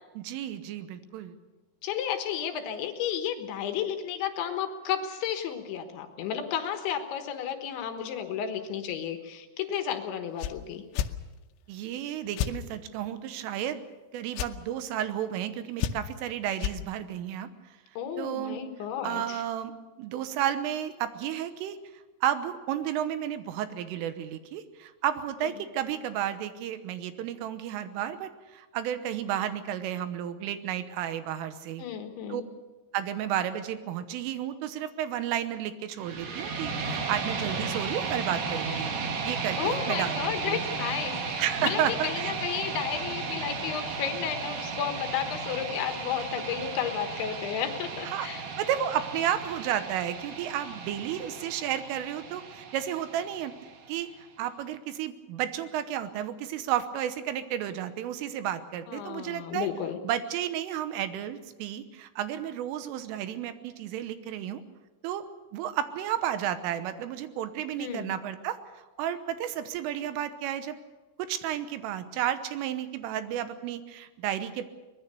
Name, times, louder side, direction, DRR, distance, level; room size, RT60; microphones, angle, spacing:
voice 1, 0.2-1.4 11.7-13.8 14.1-17.5 18.2-18.6 19.0-21.8 22.2-31.8 32.3-32.4 32.9-38.9 39.2-40.6 41.4-42.3 48.1-48.3 48.6-53.5 53.9-54.1 54.4-59.7 60.0-64.6 65.0-65.2 65.5-68.6 69.0-70.8 71.2-74.7, right 10 dB, 80° right, 11 dB, 3.5 m, -32 dB
voice 2, 1.8-10.8 18.0-19.4 31.8-32.5 39.6-48.4 58.9-60.0 67.8-68.2, left 9 dB, 70° left, 6 dB, 3.5 m, -32 dB
sound 1, 10.4-10.6 10.9-11.1 12.4-12.6 14.3-14.5 15.8-16.2 16.6-16.8, left 11 dB, 90° left, 3.6 m, -29 dB
sound 2, 36.0-54.0, right 4 dB, 50° right, 2.9 m, -35 dB
23.0 x 20.5 x 6.8 m, 1.2 s
omnidirectional pair, 5.9 m